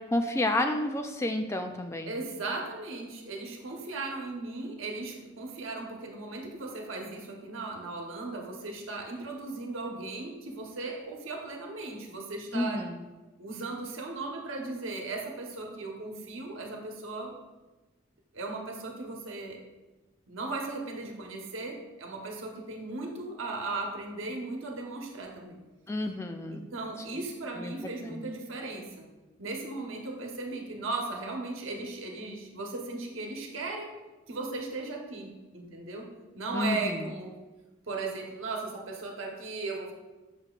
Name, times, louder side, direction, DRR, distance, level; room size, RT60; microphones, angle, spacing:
voice 1, 0.1-2.1 12.5-13.0 25.9-26.6 27.1-27.2 27.6-27.7 28.1-28.2 36.5-37.0, left 1 dB, 15° left, 5 dB, 0.3 m, -30 dB
voice 2, 2.1-12.9 13.4-17.4 18.3-19.6 20.3-25.6 26.5-29.1 29.4-33.9 34.3-36.1 36.3-37.3 37.9-39.9, right 3 dB, 80° right, 1 dB, 1.1 m, -37 dB
6.9 x 6.7 x 2.4 m, 1.2 s
head